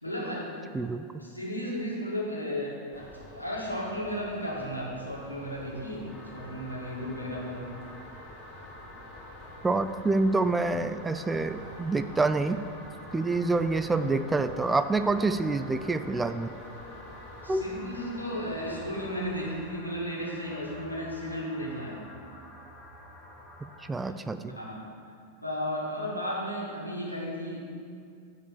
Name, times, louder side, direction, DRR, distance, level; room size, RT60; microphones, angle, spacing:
voice 1, 0.0-0.5 1.2-7.7 13.1-13.3 14.0-14.1 17.4-22.0 24.0-24.1 24.6-24.8 25.4-27.6, equal, 85° left, -4 dB, 1.9 m, -34 dB
voice 2, 0.7-1.1 9.6-12.6 13.1-16.5 17.5-17.6 23.9-24.6, right 3 dB, 10° right, 10 dB, 0.3 m, -27 dB
sound 1, 2.9-19.5, left 1 dB, 45° left, 2.2 m, -48 dB
sound 2, 6.1-23.9, left 1 dB, 10° left, 1.6 m, -49 dB
9.0 x 5.0 x 6.8 m, 2.3 s
figure-of-eight pair, 90°, 0 cm